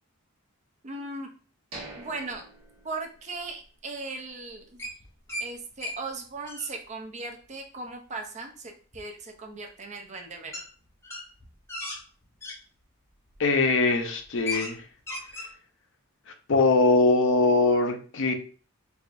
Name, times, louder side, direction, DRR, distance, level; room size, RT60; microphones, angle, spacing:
voice 1, 0.8-1.3 1.9-2.4 2.8-4.9 5.4-10.5, right 3 dB, 30° right, 3 dB, 0.5 m, -38 dB
sound 1, 1.7-3.6 4.0-4.1 4.6-4.8, right 2 dB, 75° right, 1.1 m, -45 dB
sound 2, 4.8-5.5 5.8-6.0 6.3-6.7 8.9-9.0 10.5-10.7 11.0-12.6 13.3-13.5 13.9-14.0 14.2-14.7 15.0-15.5, left 2 dB, 10° left, 0.7 m, -35 dB
voice 2, 13.4-14.8 16.5-18.3, left 3 dB, 60° left, 5 dB, 0.6 m, -22 dB
4.6 x 2.5 x 2.5 m, 0.40 s
head